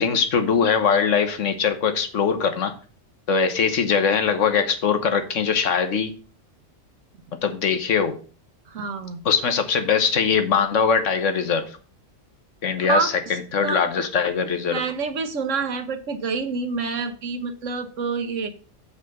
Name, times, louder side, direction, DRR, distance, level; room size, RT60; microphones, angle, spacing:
voice 1, 0.0-2.7 3.3-6.1 7.4-8.2 9.2-11.7 12.6-14.8, left 6 dB, 85° left, 8 dB, 1.4 m, -21 dB
voice 2, 8.7-9.2 12.9-13.1 13.6-13.8 14.7-18.5, right 5 dB, 85° right, 8 dB, 1.4 m, -27 dB
6.9 x 5.1 x 6.3 m, 0.39 s
omnidirectional pair, 1.3 m